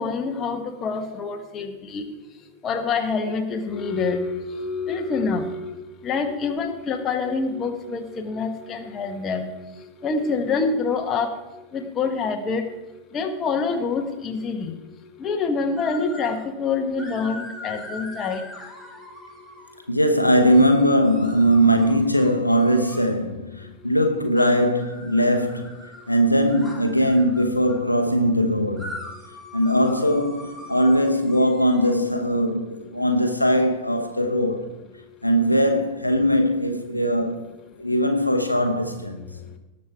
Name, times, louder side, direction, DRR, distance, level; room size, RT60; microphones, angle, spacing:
voice 1, 0.0-2.1 2.6-11.4 11.7-12.7 13.1-14.7 15.2-18.5, left 4 dB, 25° left, 1.3 m, -26 dB
sound 1, 15.8-16.5 17.0-19.8 20.5-23.2 24.4-27.8 28.8-31.9, left 1 dB, 10° right, 3.7 m, -42 dB
voice 2, 19.9-28.9 29.5-34.7 35.2-37.4 37.8-39.2, equal, 85° left, 1.0 m, -20 dB
18.0 x 6.5 x 4.6 m
figure-of-eight pair, 90°, 0 cm